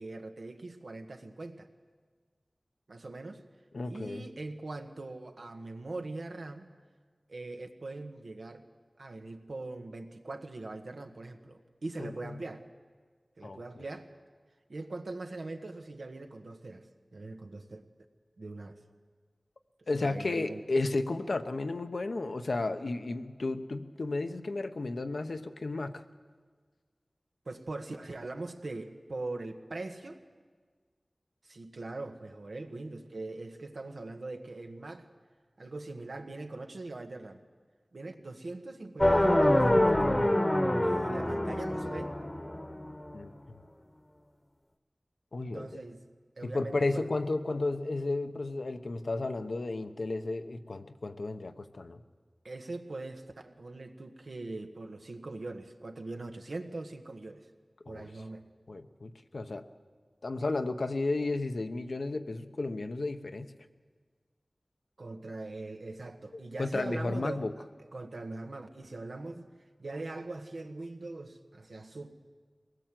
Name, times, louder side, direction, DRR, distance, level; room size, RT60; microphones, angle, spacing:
voice 1, 0.0-1.7 2.9-3.4 3.9-6.7 7.3-8.6 9.0-12.7 13.4-14.1 14.7-17.8 18.4-18.8 20.0-20.6 27.4-30.2 31.4-35.1 35.6-37.4 37.9-40.2 40.8-42.2 45.4-46.0 46.4-47.1 52.4-57.5 57.9-58.4 65.0-67.5 67.9-69.5 69.8-72.1, right 2 dB, 85° right, 5 dB, 1.5 m, -41 dB
voice 2, 3.7-4.2 12.0-12.4 13.4-13.8 19.9-26.0 43.1-43.6 45.3-45.8 46.4-52.0 57.9-58.1 58.7-59.6 60.2-63.5 66.6-67.5, left 2 dB, 85° left, 8 dB, 1.0 m, -33 dB
sound 1, 39.0-43.0, left 1 dB, 25° left, 1.1 m, -26 dB
22.5 x 19.5 x 7.7 m, 1.5 s
wide cardioid pair, 60°, 0 cm